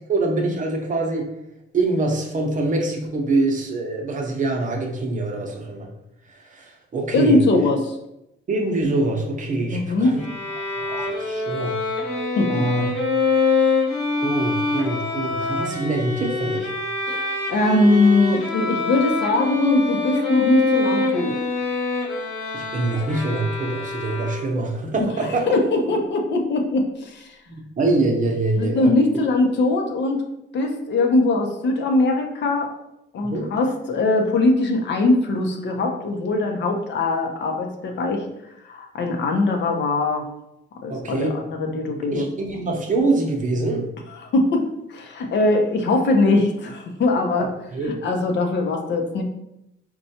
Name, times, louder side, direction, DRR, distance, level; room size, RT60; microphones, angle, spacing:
voice 1, 0.1-1.3 1.7-5.9 6.3-7.4 8.5-10.2 10.8-11.8 12.5-12.9 14.2-16.7 22.5-25.5 27.5-28.9 33.3-33.5 40.9-41.3 42.1-43.9 47.7-48.0, right 2 dB, 40° right, 1 dB, 0.7 m, -24 dB
voice 2, 7.1-8.0 9.7-10.2 12.4-12.6 17.1-21.4 25.5-27.3 28.6-30.2 30.5-32.7 33.1-38.3 38.6-40.3 40.8-42.3 44.2-47.5 47.9-49.2, left 2 dB, 65° left, 3 dB, 0.6 m, -21 dB
Bowed string instrument, 10.2-24.7, left 3 dB, 80° left, 1.1 m, -25 dB
4.2 x 2.2 x 2.7 m, 0.84 s
cardioid pair, 90°, 20 cm